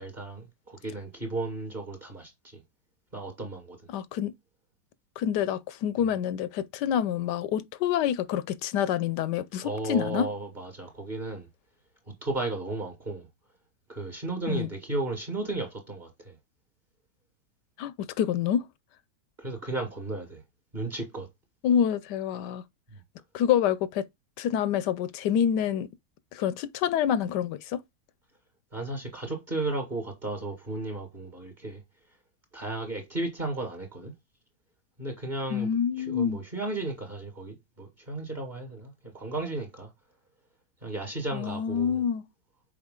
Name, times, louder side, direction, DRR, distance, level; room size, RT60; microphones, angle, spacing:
voice 1, 0.0-2.6 3.1-3.8 9.6-11.5 12.2-13.3 13.9-16.4 19.4-20.4 20.7-21.3 28.7-31.8 32.5-34.1 35.0-35.7 36.1-39.9 40.8-42.0, right 2 dB, 25° right, 2.0 m, -34 dB
voice 2, 3.9-4.3 5.2-10.3 14.5-14.7 17.8-18.7 21.6-22.6 23.3-24.0 24.4-25.9 26.3-27.8 35.5-36.4 41.3-42.2, left 9 dB, 80° left, 1.2 m, -27 dB
7.1 x 4.6 x 3.7 m
omnidirectional pair, 1.8 m